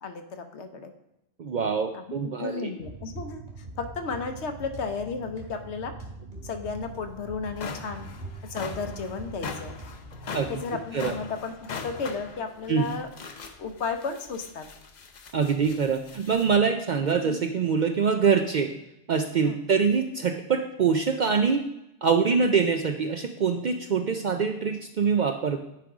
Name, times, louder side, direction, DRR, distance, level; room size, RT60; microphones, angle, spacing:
voice 1, 0.0-0.9 1.9-3.4 3.8-5.9 6.4-8.1 8.4-9.7 10.5-13.1 13.6-14.7 19.4-19.6, left 4 dB, 70° left, 7 dB, 1.1 m, -33 dB
voice 2, 1.4-2.7 10.3-10.5 10.9-11.1 12.7-12.9 15.3-18.7 19.1-21.6 22.0-25.6, right 6 dB, 60° right, 5 dB, 0.5 m, -24 dB
sound 1, 2.8-10.9, right 2 dB, 40° right, 2.0 m, -42 dB
sound 2, 6.8-6.9 7.3-16.6, left 5 dB, 50° left, 0.6 m, -41 dB
9.3 x 3.6 x 4.8 m, 0.87 s
omnidirectional pair, 1.2 m